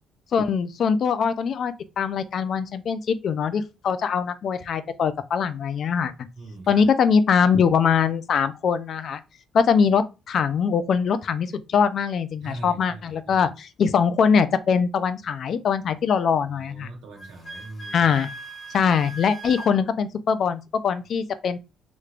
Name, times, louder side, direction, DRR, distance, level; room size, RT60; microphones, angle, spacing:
voice 1, 0.3-6.1 6.7-9.2 9.5-16.9 17.9-18.3 18.7-21.6, left 6 dB, 60° left, 0.4 m, -22 dB
voice 2, 6.3-6.8 12.4-13.5 16.5-18.1, right 2 dB, 85° right, 1.4 m, -41 dB
Wind instrument woodwind instrument, 17.2-19.8, right 1 dB, 35° left, 1.1 m, -39 dB
3.3 x 3.1 x 2.4 m
cardioid pair, 95°, 0 cm